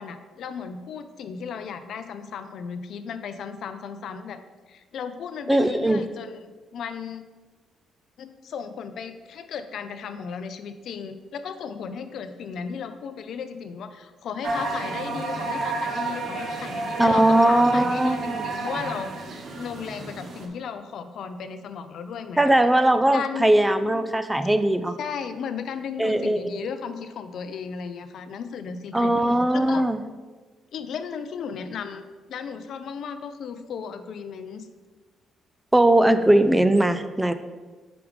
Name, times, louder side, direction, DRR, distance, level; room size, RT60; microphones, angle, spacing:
voice 1, 0.0-4.4 4.7-7.2 8.2-19.1 19.6-22.4 23.1-23.5 25.0-29.1 29.5-29.8 30.7-32.0 32.3-34.7, left 6 dB, 70° left, 9 dB, 0.5 m, -35 dB
voice 2, 5.5-6.0 17.0-18.5 22.4-25.0 26.0-26.6 28.9-30.0 35.7-37.3, right 1 dB, 10° right, 11 dB, 0.4 m, -20 dB
sound 1, 14.4-20.5, right 3 dB, 60° right, 0.9 m, -31 dB
5.0 x 4.8 x 5.0 m, 1.3 s
cardioid pair, 90°, 0 cm